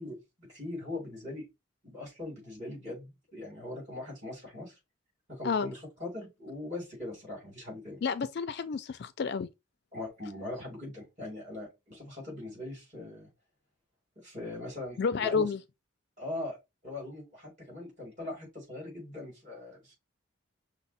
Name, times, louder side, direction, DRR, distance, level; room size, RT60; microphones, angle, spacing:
voice 1, 0.0-1.5 1.8-4.7 5.3-8.0 9.9-13.3 14.2-15.4 16.2-16.6 16.8-19.9, left 2 dB, 35° right, 2.7 m, -41 dB
voice 2, 8.0-9.5 15.0-15.6, left 5 dB, 50° left, 0.3 m, -30 dB
5.8 x 2.0 x 4.0 m
head